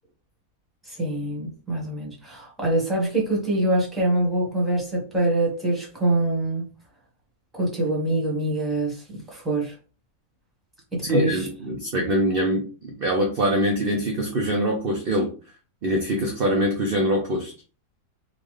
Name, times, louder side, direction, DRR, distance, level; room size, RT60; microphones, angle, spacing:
voice 1, 0.8-6.6 7.5-9.7 10.9-11.5, right 1 dB, ahead, 1.3 m, -24 dB
voice 2, 11.0-15.3 15.8-17.5, equal, 50° right, 0.7 m, -24 dB
3.8 x 2.5 x 3.2 m
omnidirectional pair, 1.7 m